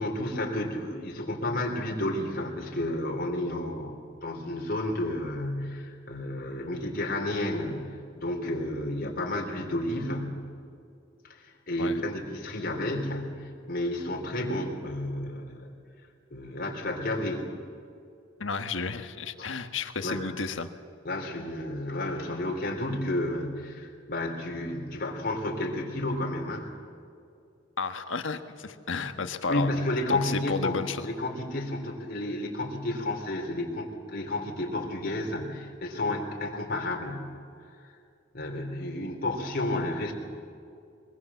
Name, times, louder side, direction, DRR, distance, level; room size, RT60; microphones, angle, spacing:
voice 1, 0.0-10.4 11.3-15.7 16.3-17.5 19.4-19.5 20.0-20.2 21.0-26.7 29.5-30.8 31.0-37.3 38.3-40.1, left 1 dB, 50° left, 0 dB, 3.6 m, -31 dB
voice 2, 18.4-20.7 27.8-29.7 30.1-31.1, left 4 dB, 80° left, 8 dB, 1.4 m, -32 dB
22.5 x 22.0 x 7.3 m, 2.5 s
head